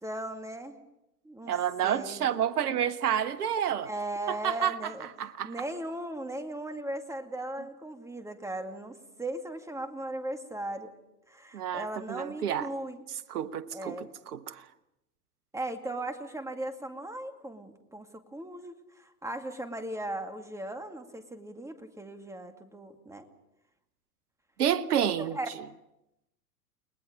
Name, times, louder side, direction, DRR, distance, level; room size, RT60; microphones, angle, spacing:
voice 1, 0.0-0.8 1.2-1.6 1.8-2.3 3.8-5.1 5.4-10.9 11.3-13.0 13.7-14.1 15.5-23.3 25.3-25.5, right 1 dB, 5° right, 2.3 m, -37 dB
voice 2, 1.5-3.9 4.3-4.9 5.2-5.5 11.5-12.7 13.3-14.6 24.6-25.4, right 9 dB, 80° right, 1.2 m, -29 dB
30.0 x 20.5 x 5.1 m
hypercardioid pair, 100°, 45 cm